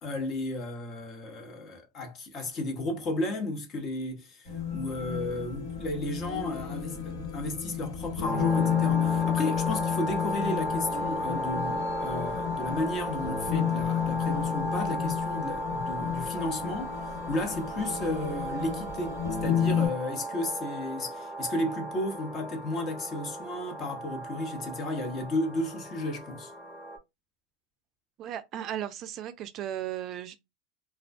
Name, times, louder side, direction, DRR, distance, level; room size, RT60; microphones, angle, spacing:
voice 1, 0.0-26.5, left 1 dB, 35° left, 0.8 m, -33 dB
sound 1, 4.5-19.9, left 8 dB, 85° left, 1.3 m, -31 dB
sound 2, 8.2-27.0, equal, 10° left, 1.0 m, -35 dB
voice 2, 28.2-30.4, right 11 dB, 45° right, 0.3 m, -36 dB
2.3 x 2.1 x 2.5 m
supercardioid pair, 115°, 0 cm